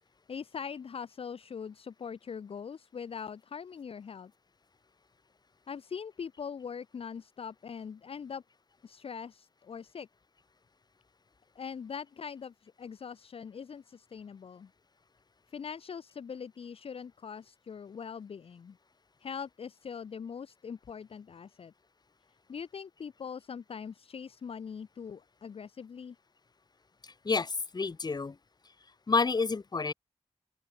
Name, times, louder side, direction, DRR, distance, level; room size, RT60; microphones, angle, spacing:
voice 1, 0.3-4.3 5.7-8.4 8.8-10.1 11.6-14.7 15.5-18.8 19.2-21.7 22.5-26.2, left 6 dB, 60° left, 0.6 m, -42 dB
voice 2, 27.0-28.4 29.1-29.9, left 4 dB, 40° left, 1.1 m, -29 dB
open air
wide cardioid pair, 120°, 11 cm